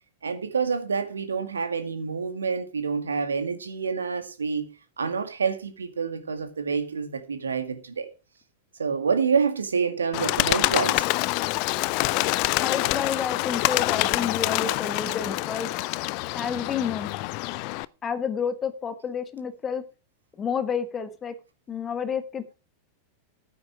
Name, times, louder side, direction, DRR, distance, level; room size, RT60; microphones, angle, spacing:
voice 1, 0.2-8.1 8.8-11.0, right 5 dB, 70° right, 2.1 m, -27 dB
Bird, 10.1-17.9, left 21 dB, 45° left, 0.5 m, -26 dB
voice 2, 12.6-15.7 16.3-17.1 18.0-19.8 20.4-21.3 21.7-22.5, left 6 dB, 25° left, 1.6 m, -30 dB
13.5 x 9.4 x 4.9 m
figure-of-eight pair, 90°, 0 cm